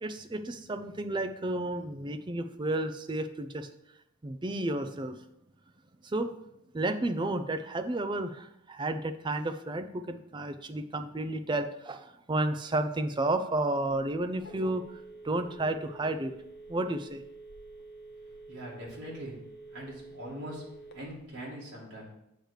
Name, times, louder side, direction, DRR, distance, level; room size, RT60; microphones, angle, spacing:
voice 1, 0.0-3.7 4.2-5.2 6.0-6.3 6.7-16.3 16.7-17.2, right 2 dB, 20° right, 8 dB, 0.4 m, -32 dB
Telephone, 13.9-21.2, right 3 dB, 50° left, 0.7 m, -49 dB
voice 2, 18.5-19.4 19.7-20.7 20.9-22.1, equal, 50° right, -5 dB, 2.2 m, -42 dB
8.1 x 3.2 x 6.3 m, 0.83 s
head